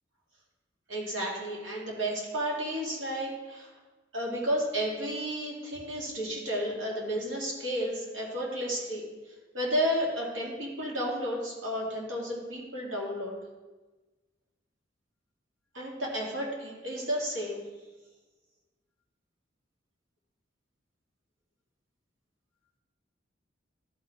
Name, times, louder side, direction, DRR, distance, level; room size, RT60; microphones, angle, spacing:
voice 1, 0.9-3.7 4.1-9.0 9.5-13.4 15.7-17.6, equal, 90° right, -3 dB, 2.4 m, -32 dB
13.0 x 4.4 x 4.7 m, 1.2 s
head